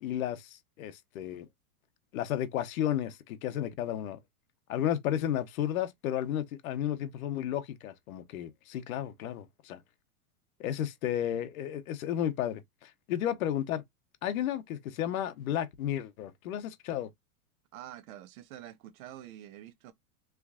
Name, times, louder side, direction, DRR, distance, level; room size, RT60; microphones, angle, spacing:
voice 1, 0.0-1.5 2.1-4.2 4.7-9.8 10.6-13.8 14.2-17.1, left 11 dB, 65° left, 0.8 m, -33 dB
voice 2, 17.7-19.9, right 12 dB, 65° right, 0.8 m, -47 dB
3.4 x 3.1 x 2.3 m
supercardioid pair, 160°, 45 cm